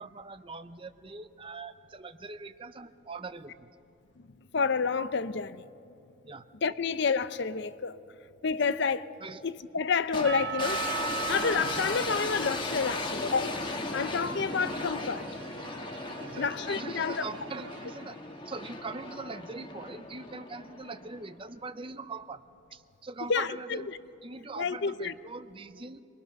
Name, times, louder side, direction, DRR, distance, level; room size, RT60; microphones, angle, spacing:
voice 1, 0.0-3.7 6.2-6.5 9.2-9.4 16.2-18.2 18.4-22.4 22.7-23.9 24.2-26.0, right 3 dB, 25° right, 0.6 m, -42 dB
voice 2, 4.5-5.6 6.6-8.0 8.4-9.1 9.4-10.9 11.3-13.6 13.9-15.3 16.4-17.2 23.3-24.0 24.6-25.1, left 5 dB, 55° left, 0.6 m, -29 dB
sound 1, 10.1-21.4, left 2 dB, 25° left, 1.5 m, -36 dB
Percussion / Church bell, 10.2-14.2, right 12 dB, 85° right, 3.4 m, -38 dB
sound 2, 10.4-19.0, right 3 dB, 60° right, 1.5 m, -48 dB
27.0 x 21.0 x 6.5 m
head